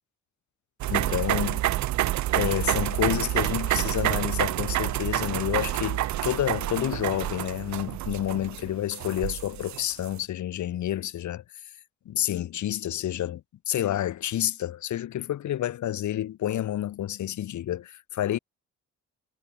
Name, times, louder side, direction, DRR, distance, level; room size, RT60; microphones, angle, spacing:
sound 1, 0.8-10.1, right 15 dB, 70° right, 0.7 m, -28 dB
voice 1, 0.9-1.6 2.3-11.4 12.1-18.4, left 12 dB, 70° left, 2.7 m, -29 dB
cardioid pair, 90°, 30 cm